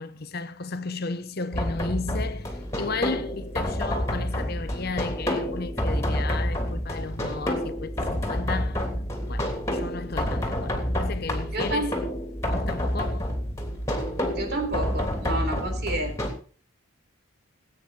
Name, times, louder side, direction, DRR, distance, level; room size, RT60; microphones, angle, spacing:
voice 1, 0.0-8.9 9.3-12.0 12.5-13.3, left 3 dB, 45° left, 0.9 m, -34 dB
sound 1, 1.5-16.3, equal, 15° left, 3.0 m, -28 dB
voice 2, 11.5-11.9 14.4-16.2, right 1 dB, 50° right, 3.6 m, -29 dB
19.5 x 9.2 x 4.3 m
head